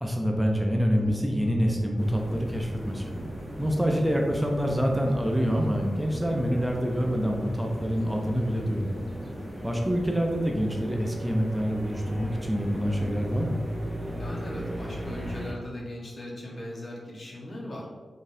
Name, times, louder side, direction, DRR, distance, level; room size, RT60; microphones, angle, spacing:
voice 1, 0.0-3.1 3.6-9.0 9.6-13.6, equal, 5° right, 1 dB, 0.5 m, -26 dB
sound 1, 1.0-11.2, right 1 dB, 45° right, 0.8 m, -45 dB
sound 2, 2.0-15.5, equal, 30° right, 1.1 m, -37 dB
voice 2, 14.2-17.9, left 1 dB, 55° left, -4 dB, 1.1 m, -39 dB
3.8 x 3.7 x 2.6 m, 1.4 s
cardioid pair, 50°, 0 cm